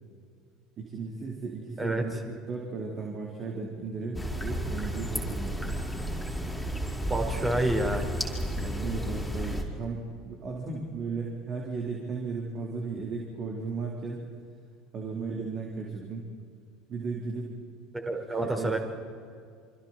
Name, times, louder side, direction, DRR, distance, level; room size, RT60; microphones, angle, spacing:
voice 1, 0.8-5.7 8.5-14.3 14.9-16.3 16.9-17.5 18.4-18.8, right 4 dB, 40° right, -1 dB, 4.1 m, -35 dB
sound 1, 4.1-9.6, equal, ahead, 5.1 m, -32 dB
voice 2, 7.1-8.1 17.9-18.8, right 2 dB, 15° right, 3 dB, 4.8 m, -28 dB
28.0 x 26.0 x 4.5 m, 2.3 s
hypercardioid pair, 70°, 0 cm